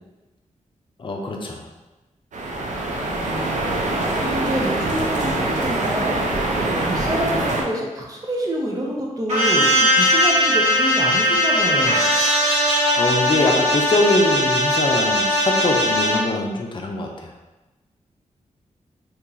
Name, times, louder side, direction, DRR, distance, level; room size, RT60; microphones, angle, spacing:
voice 1, 1.0-1.6 12.9-17.3, left 2 dB, 40° left, 0 dB, 0.5 m, -23 dB
sound 1, 2.3-7.6, right 2 dB, 70° right, 0.5 m, -24 dB
voice 2, 3.2-6.2 6.5-12.1, right 1 dB, 30° right, -2 dB, 0.6 m, -27 dB
sound 2, 9.3-16.2, equal, 55° right, 1.4 m, -19 dB
2.9 x 2.8 x 3.8 m, 1.1 s
wide cardioid pair, 130°, 13 cm